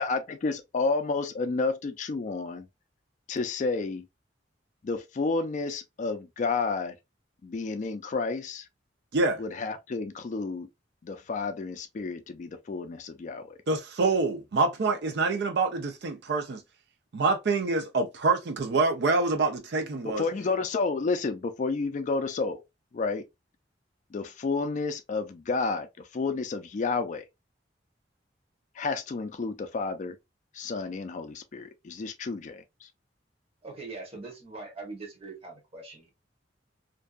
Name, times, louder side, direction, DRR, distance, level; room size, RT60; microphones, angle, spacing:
voice 1, 0.0-2.7 3.3-4.1 4.8-6.9 7.4-8.7 9.4-10.7 11.0-13.6 20.0-22.6 22.9-23.2 24.1-27.3 28.8-30.2 30.5-32.9, left 4 dB, 45° left, 0.3 m, -31 dB
voice 2, 13.7-16.6 17.1-20.2, right 3 dB, 65° right, 0.4 m, -26 dB
voice 3, 33.6-36.1, right 3 dB, 35° right, 1.0 m, -42 dB
2.6 x 2.2 x 2.3 m
head